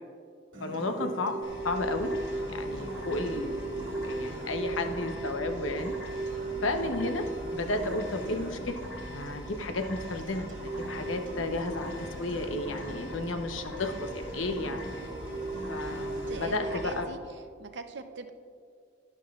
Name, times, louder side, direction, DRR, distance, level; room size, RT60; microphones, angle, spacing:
Acoustic guitar, 0.5-16.5, right 1 dB, 80° right, 2.1 m, -44 dB
voice 1, 0.6-1.4 1.6-2.1 2.5-5.9 6.6-7.3 7.5-8.8 9.1-14.8 15.7-17.0, left 2 dB, 90° left, 6 dB, 0.9 m, -33 dB
sound 1, 1.0-9.6 10.0-10.1 10.6-17.0, right 2 dB, 15° right, 1.0 m, -38 dB
sound 2, 1.4-17.0, equal, 65° left, 1.2 m, -43 dB
voice 2, 16.3-18.3, right 3 dB, 60° right, 8 dB, 0.7 m, -42 dB
12.0 x 11.5 x 2.4 m, 2.2 s
head